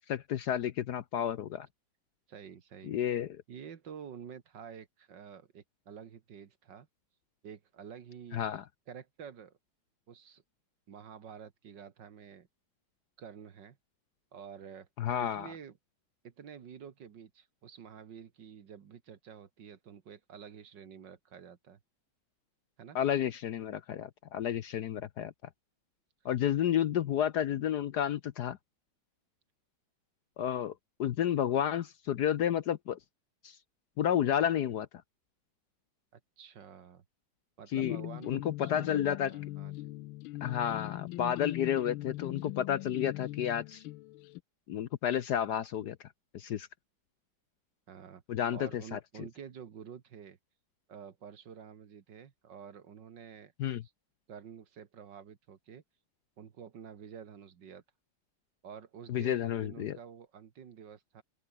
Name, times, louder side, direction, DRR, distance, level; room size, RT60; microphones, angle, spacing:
voice 1, 0.1-1.7 2.9-3.4 8.3-8.6 15.0-15.5 22.9-25.3 26.2-28.6 30.4-30.7 31.0-33.0 33.4-33.6 34.0-34.9 37.7-38.0 38.3-39.3 40.4-43.8 44.7-46.0 46.3-46.7 48.3-49.0 53.6-53.8 59.1-60.0, left 10 dB, 65° left, 1.2 m, -31 dB
voice 2, 2.3-3.0 3.5-6.9 7.4-8.4 8.9-9.6 10.1-10.4 10.9-12.5 13.2-13.8 14.3-14.9 15.2-15.8 16.2-21.8 22.8-23.0 36.1-37.0 37.6-39.9 47.9-48.2 48.5-50.4 50.9-53.5 53.8-53.9 54.3-55.8 56.4-57.8 58.6-61.2, right 7 dB, 60° right, 2.1 m, -49 dB
sound 1, 37.8-44.4, left 18 dB, 80° left, 1.4 m, -41 dB
open air
omnidirectional pair, 2.2 m